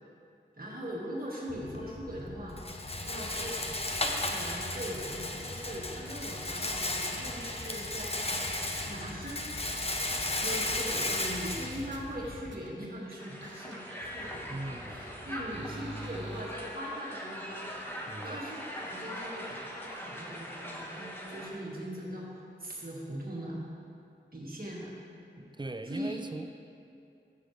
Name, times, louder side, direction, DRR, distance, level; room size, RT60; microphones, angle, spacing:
voice 1, 0.6-2.6 3.1-3.6 4.2-8.3 8.9-9.5 10.3-17.7 18.2-19.7 19.9-23.6 24.3-24.9 25.9-26.2, equal, 45° right, -5 dB, 1.9 m, -40 dB
Rattle, 1.5-12.5, left 2 dB, 30° left, 0.8 m, -35 dB
sound 1, 6.8-10.3 10.7-10.8 11.0-11.5 11.9-12.7 13.1-13.2 13.4-16.4, right 2 dB, 70° right, 0.9 m, -48 dB
Crowd, 13.2-21.5, equal, 10° left, 1.4 m, -42 dB
voice 2, 14.5-15.0 18.1-18.4 25.6-26.5, right 2 dB, 25° right, 8 dB, 0.5 m, -39 dB
12.0 x 8.0 x 3.3 m, 2.6 s
wide cardioid pair, 45°, 20 cm